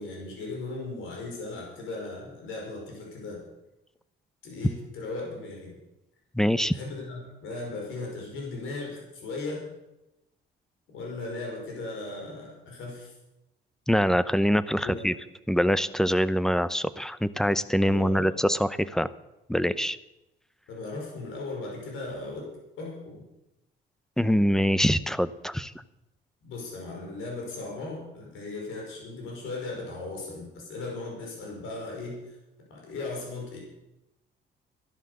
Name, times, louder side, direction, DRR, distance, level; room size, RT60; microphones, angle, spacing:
voice 1, 0.0-3.4 4.4-5.7 6.7-9.6 10.9-13.1 14.8-15.1 17.8-18.3 20.7-22.5 22.8-23.2 26.4-32.4 32.7-33.6, left 3 dB, 85° left, -1 dB, 5.4 m, -37 dB
voice 2, 6.3-6.8 13.9-15.1 15.5-19.1 19.5-20.0 24.2-25.7, equal, ahead, 15 dB, 0.7 m, -24 dB
14.5 x 11.5 x 6.9 m, 0.92 s
cardioid pair, 90°, 20 cm